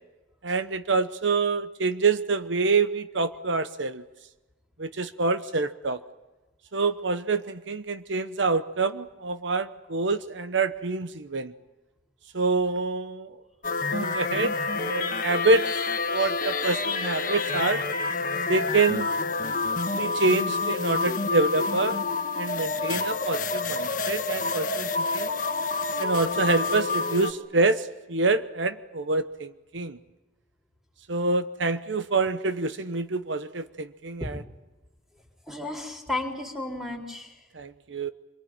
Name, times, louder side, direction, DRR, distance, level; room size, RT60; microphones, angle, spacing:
voice 1, 0.4-4.0 4.8-6.0 6.7-11.5 12.3-13.4 13.9-14.5 14.8-15.7 16.1-17.8 18.5-19.1 19.9-22.0 22.3-25.3 26.0-30.0 31.1-34.4 37.5-38.1, right 3 dB, 75° right, 11 dB, 1.0 m, -26 dB
sound 1, 13.6-27.3, left 4 dB, 45° left, 1.7 m, -28 dB
voice 2, 35.5-37.4, left 2 dB, ahead, 1 dB, 4.2 m, -33 dB
27.0 x 22.5 x 9.0 m, 1.1 s
head